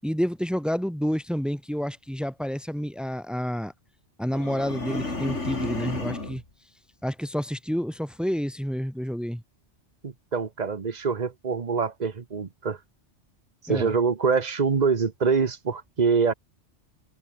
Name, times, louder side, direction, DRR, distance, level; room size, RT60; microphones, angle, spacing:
voice 1, 0.0-3.7 4.2-6.4 7.0-9.4 13.7-13.9, equal, ahead, 4.6 m, -29 dB
sound 1, 4.3-6.4, left 2 dB, 85° left, 4.4 m, -32 dB
voice 2, 10.0-12.8 13.6-16.3, right 5 dB, 40° right, 1.1 m, -25 dB
omnidirectional pair, 1.2 m